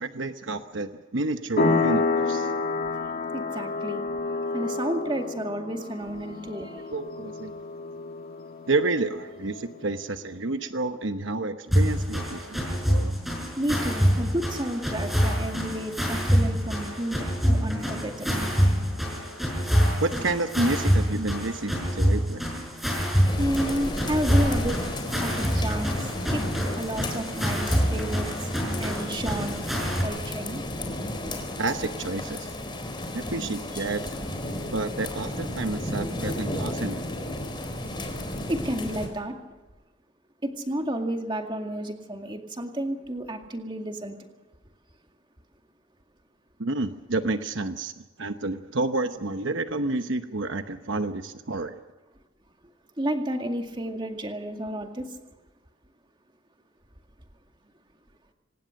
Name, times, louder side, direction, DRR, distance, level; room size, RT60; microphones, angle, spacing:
voice 1, 0.0-2.5 6.9-7.5 8.7-13.1 20.0-22.4 31.6-32.5 33.1-34.1 34.7-37.0 46.6-51.8, right 2 dB, 65° right, 8 dB, 1.0 m, -29 dB
sound 1, 1.6-9.9, left 3 dB, 45° left, 2.6 m, -29 dB
voice 2, 3.3-4.0 4.5-6.8 13.6-18.5 23.4-24.8 25.2-26.4 26.8-28.3 28.8-29.6 30.0-30.6 38.0-38.1 38.5-39.3 40.4-44.2 53.0-55.0, right 1 dB, 25° right, 4 dB, 2.1 m, -31 dB
sound 2, 11.7-30.0, equal, ahead, 6.0 m, -26 dB
sound 3, 23.2-39.1, left 1 dB, 25° left, 3.9 m, -33 dB
26.0 x 19.0 x 6.5 m, 1.2 s
head